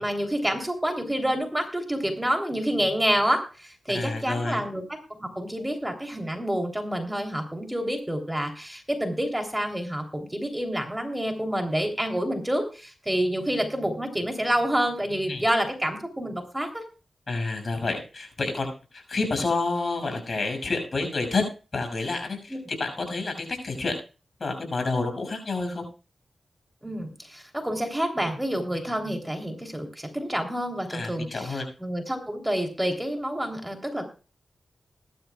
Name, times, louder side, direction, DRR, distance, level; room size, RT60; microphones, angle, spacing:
voice 1, 0.0-4.8 5.2-16.8 22.5-22.6 26.8-34.1, equal, 10° right, 4 dB, 3.3 m, -28 dB
voice 2, 3.9-4.6 15.3-15.4 17.3-21.5 21.7-23.9 24.4-25.9 30.9-31.6, left 3 dB, 60° left, 4 dB, 6.3 m, -29 dB
20.0 x 12.0 x 2.3 m, 0.34 s
cardioid pair, 45°, 0 cm